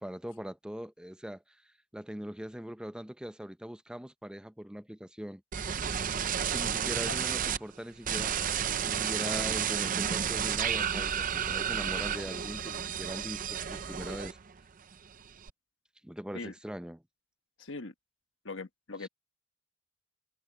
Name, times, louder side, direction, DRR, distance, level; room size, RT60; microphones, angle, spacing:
voice 1, 0.0-5.4 6.5-8.4 8.8-14.4 16.0-17.0 19.0-19.1, equal, 5° right, 0.6 m, -41 dB
sound 1, 5.5-7.6 8.0-14.6 14.9-15.5, right 8 dB, 45° right, 0.6 m, -31 dB
voice 2, 17.6-17.9 18.4-19.1, left 3 dB, 65° left, 1.4 m, -40 dB
head